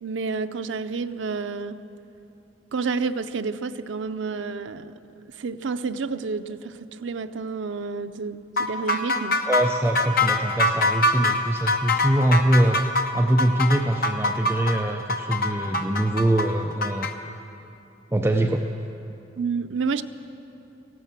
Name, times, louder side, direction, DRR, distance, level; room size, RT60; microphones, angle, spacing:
voice 1, 0.0-1.8 2.7-4.9 5.4-9.4 19.4-20.0, right 4 dB, 85° right, 10 dB, 0.5 m, -29 dB
sound 1, 8.6-17.1, left 2 dB, 55° left, 0.9 m, -24 dB
voice 2, 9.5-12.8 13.1-17.1 18.1-18.7, right 1 dB, 15° right, 3 dB, 0.5 m, -23 dB
15.0 x 12.5 x 7.5 m, 2.8 s
head